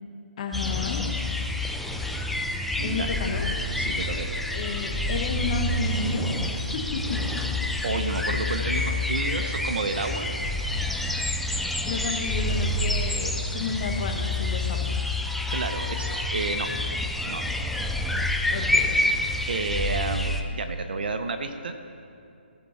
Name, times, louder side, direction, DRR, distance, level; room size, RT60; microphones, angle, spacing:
voice 1, 0.4-1.1 2.8-3.5 4.5-7.2 11.8-15.1 18.5-19.2, left 4 dB, 40° left, 3 dB, 1.4 m, -32 dB
sound 1, 0.5-20.4, left 2 dB, ahead, 0.4 m, -28 dB
voice 2, 2.8-3.1 3.8-4.4 7.8-10.3 15.5-16.7 17.3-17.5 19.5-21.8, right 3 dB, 55° right, 7 dB, 0.9 m, -31 dB
17.5 x 6.9 x 4.2 m, 2.6 s
figure-of-eight pair, 150°, 6 cm